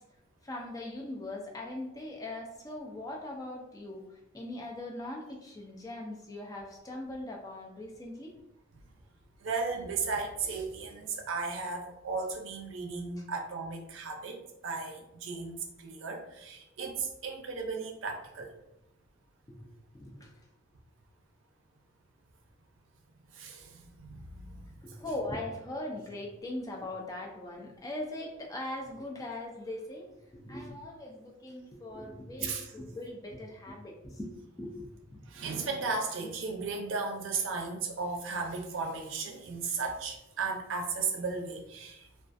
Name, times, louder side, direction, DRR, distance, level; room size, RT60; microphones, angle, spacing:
voice 1, 0.4-4.0 4.3-8.3 19.5-20.3 24.8-34.3 34.6-35.4, left 1 dB, 20° left, 0 dB, 0.4 m, -40 dB
voice 2, 9.4-18.5 23.3-24.9 32.4-32.7 35.3-42.1, right 4 dB, 80° right, 3 dB, 0.5 m, -35 dB
2.3 x 2.3 x 2.5 m, 0.88 s
head